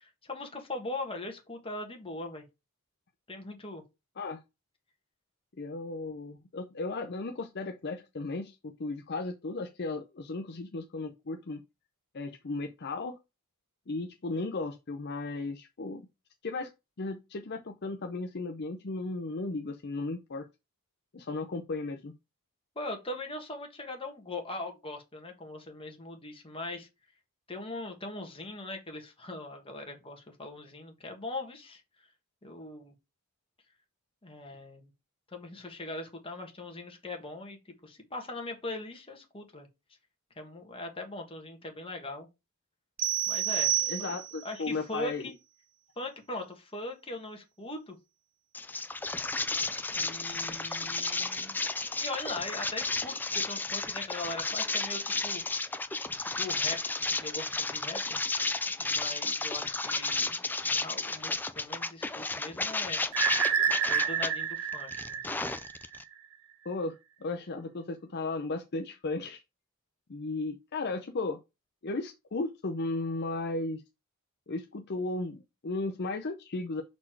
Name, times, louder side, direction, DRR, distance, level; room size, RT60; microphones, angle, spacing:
voice 1, 0.0-2.5 3.3-3.8 22.7-26.9 27.5-31.8 32.4-32.9 34.2-34.9 35.3-39.7 40.4-42.3 43.3-44.2 44.4-45.4 46.0-48.0 50.0-51.6 52.0-55.4 56.4-58.5 58.8-60.4 60.7-63.0 63.8-65.2, left 2 dB, 25° left, 1.5 m, -40 dB
voice 2, 5.6-11.6 12.1-13.2 13.9-16.0 16.4-16.7 17.0-20.5 21.1-22.1 43.8-45.3 66.6-69.4 70.1-71.4 71.8-73.8 74.5-76.8, left 3 dB, 50° left, 0.6 m, -35 dB
sound 1, 43.0-44.5, right 12 dB, 40° right, 0.9 m, -29 dB
sound 2, 48.5-64.3 64.7-66.0, left 3 dB, 10° left, 0.3 m, -32 dB
sound 3, 63.1-66.0, right 7 dB, 65° right, 1.0 m, -29 dB
5.9 x 4.3 x 4.6 m
head